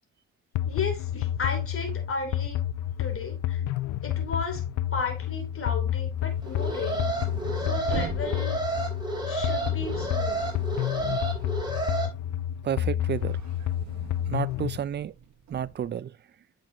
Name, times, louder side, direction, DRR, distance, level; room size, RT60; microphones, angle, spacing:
sound 1, 0.5-14.8, left 11 dB, 75° left, 0.5 m, -30 dB
voice 1, 0.6-2.6 3.0-3.6 4.0-4.6 4.9-7.1 7.6-8.6 9.3-10.4, left 4 dB, 45° left, 3.1 m, -34 dB
sound 2, 6.1-12.2 12.6-15.9, right 7 dB, 65° right, 1.6 m, -44 dB
Alarm, 6.4-12.1, right 3 dB, 15° right, 3.7 m, -31 dB
voice 2, 12.6-13.4 14.3-15.1 15.5-16.2, right 9 dB, 35° right, 0.5 m, -31 dB
8.3 x 6.5 x 2.8 m
cardioid pair, 90°, 30 cm